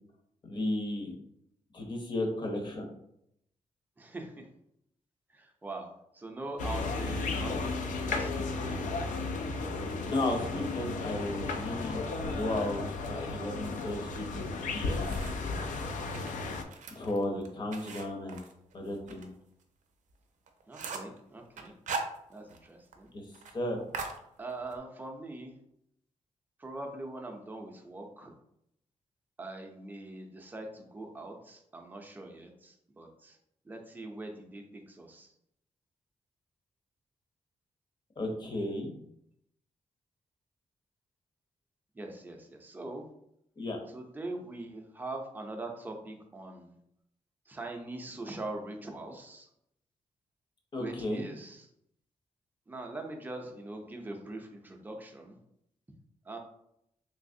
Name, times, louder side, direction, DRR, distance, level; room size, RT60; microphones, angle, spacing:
voice 1, 0.4-1.1 1.7-2.9 10.0-14.4 14.7-15.2 16.9-18.4 18.7-19.3 23.1-23.3 23.5-23.8 38.2-38.9 43.6-43.8 50.7-51.3, left 1 dB, 35° left, 1 dB, 0.7 m, -34 dB
voice 2, 4.0-4.5 5.3-5.9 6.1-8.9 20.7-21.7 22.3-23.1 24.4-25.5 26.6-28.3 29.4-33.4 33.6-35.3 41.9-43.1 43.9-46.8 47.5-49.5 50.8-51.7 52.7-55.4 56.3-56.4, right 2 dB, 15° right, 2 dB, 0.4 m, -42 dB
sound 1, 6.6-16.6, left 3 dB, 90° left, 0.4 m, -34 dB
sound 2, 14.4-15.6 16.0-19.3 19.6-19.7 20.1-20.2 20.5-21.2 21.6-22.7 22.9-23.0 23.3-23.5 23.9-24.8, right 4 dB, 75° right, 0.5 m, -40 dB
3.2 x 2.8 x 2.6 m, 0.75 s
wide cardioid pair, 155°, 13 cm